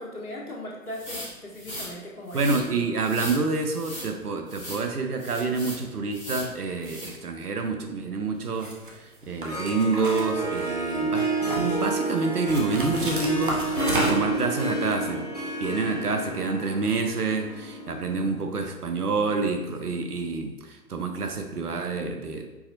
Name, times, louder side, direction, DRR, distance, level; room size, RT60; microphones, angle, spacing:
voice 1, 0.0-2.4 2.7-2.8, left 1 dB, 75° left, -3 dB, 1.3 m, -38 dB
sound 1, 0.9-1.9 2.3-2.6 3.0-3.4 3.7-4.1 4.5-4.8 5.2-5.8 6.1-6.5 6.8-7.1, equal, 5° left, 1.0 m, -38 dB
voice 2, 2.3-15.3 15.6-22.5, right 4 dB, 80° right, 5 dB, 0.7 m, -28 dB
sound 2, 8.5-8.9 9.4-10.9 11.2-11.8 12.5-14.4, right 1 dB, 35° right, 0.7 m, -31 dB
Harp, 9.2-18.2, right 2 dB, 30° left, 0.5 m, -30 dB
4.7 x 4.2 x 2.6 m, 1.1 s
figure-of-eight pair, 140°, 45 cm